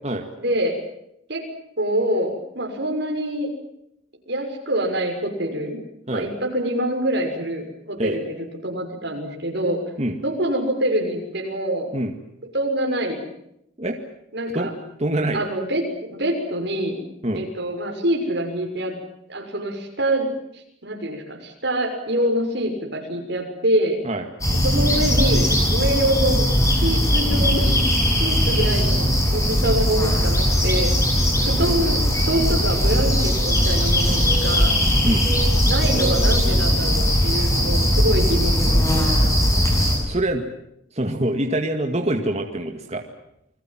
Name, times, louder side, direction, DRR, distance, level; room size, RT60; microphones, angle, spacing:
voice 1, 0.3-0.8 1.3-1.4 1.8-3.5 4.3-5.8 6.1-9.8 10.2-11.9 12.5-13.2 14.3-14.7 15.3-17.0 17.3-18.9 19.3-20.3 20.5-24.0 24.6-27.8 28.2-30.9 31.4-34.7 35.7-39.5, right 1 dB, 55° right, 2 dB, 6.4 m, -25 dB
voice 2, 14.5-15.4 17.2-17.4 24.0-24.2 35.0-35.3 40.1-40.4 40.9-43.0, right 1 dB, 30° right, 4 dB, 2.0 m, -25 dB
sound 1, 24.4-40.0, equal, 15° left, 6.9 m, -19 dB
29.5 x 21.0 x 7.6 m, 0.77 s
head